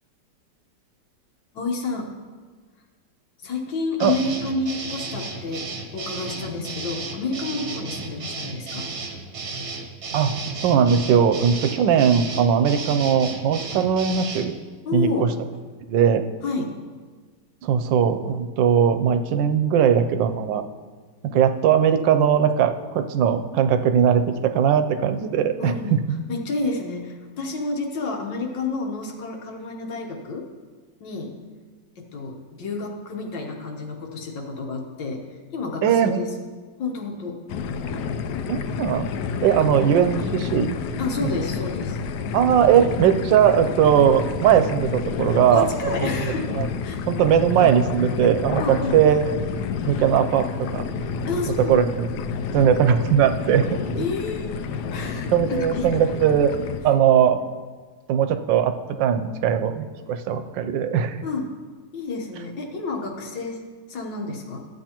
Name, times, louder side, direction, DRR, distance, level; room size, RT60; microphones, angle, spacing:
voice 1, 1.5-2.1 3.4-8.9 14.9-15.4 16.4-16.7 25.6-25.9 26.3-30.5 31.0-31.3 32.0-36.3 36.8-37.4 39.6-39.7 41.0-42.0 45.5-47.0 48.6-49.0 51.3-51.9 54.0-56.1 61.2-61.6 61.9-63.6 63.9-64.7, left 3 dB, 90° left, 1 dB, 1.9 m, -30 dB
sound 1, 4.0-14.5, right 3 dB, 45° right, 1.0 m, -33 dB
voice 2, 10.1-14.5 14.9-15.3 15.9-16.2 17.6-20.6 21.2-26.0 35.8-36.2 38.5-39.1 39.4-40.8 41.2-41.3 42.3-45.7 46.0-46.1 46.6-46.7 47.1-49.3 49.9-50.8 51.7-52.1 52.5-54.0 55.3-56.5 56.8-57.4 58.1-61.2, right 8 dB, 85° right, 8 dB, 1.3 m, -19 dB
sound 2, 37.5-56.8, left 5 dB, 75° left, 1.1 m, -29 dB
13.5 x 8.3 x 2.9 m, 1.5 s
omnidirectional pair, 2.0 m